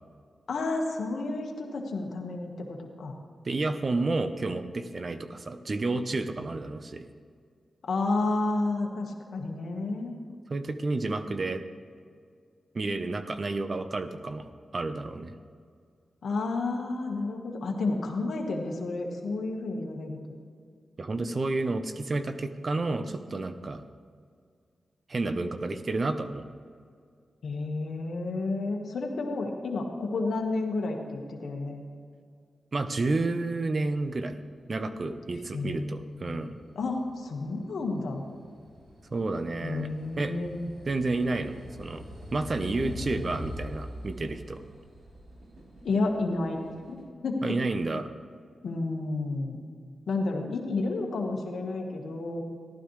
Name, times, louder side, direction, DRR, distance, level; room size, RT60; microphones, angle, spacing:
voice 1, 0.5-3.1 7.9-10.1 16.2-20.2 27.4-31.8 35.5-36.5 36.7-38.2 39.6-40.7 45.8-46.6 46.9-47.0 47.2-47.6 48.6-49.6 50.1-52.4, left 3 dB, 75° left, 1 dB, 1.5 m, -31 dB
voice 2, 3.4-7.0 10.5-11.6 12.7-15.3 21.0-23.8 25.1-26.5 32.7-34.4 34.7-36.5 39.1-39.9 40.2-40.3 40.9-42.0 42.3-44.6 47.4-48.1, right 3 dB, 45° right, 9 dB, 0.8 m, -30 dB
sound 1, 35.8-47.0, left 1 dB, 80° right, 3.5 m, -44 dB
15.0 x 12.0 x 3.3 m, 2.1 s
cardioid pair, 60°, 0 cm